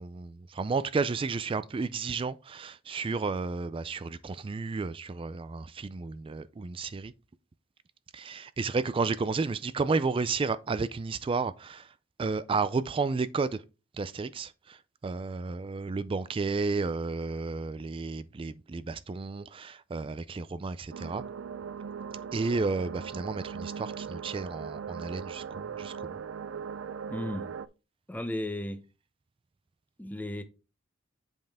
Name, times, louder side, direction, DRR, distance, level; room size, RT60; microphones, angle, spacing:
voice 1, 0.0-7.1 8.1-11.9 12.2-13.6 14.0-14.8 15.0-21.2 22.3-26.2, right 4 dB, 25° right, 0.3 m, -32 dB
sound 1, 20.9-27.7, right 6 dB, 85° right, 0.5 m, -39 dB
voice 2, 27.1-27.5 28.1-28.8 30.0-30.4, left 1 dB, 10° left, 0.8 m, -34 dB
7.8 x 5.4 x 3.5 m
head